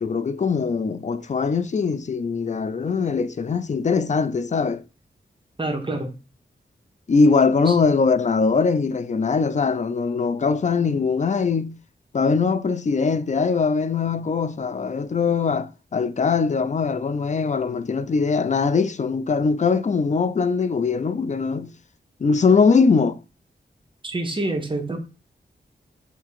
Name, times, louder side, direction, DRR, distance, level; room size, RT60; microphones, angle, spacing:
voice 1, 0.0-4.8 7.1-11.7 12.1-21.7 22.2-23.2, left 5 dB, 40° left, 0.4 m, -21 dB
voice 2, 5.6-6.1 7.7-7.8 24.0-25.0, right 2 dB, 25° right, 1.1 m, -27 dB
3.7 x 2.8 x 4.7 m
wide cardioid pair, 70°, 18 cm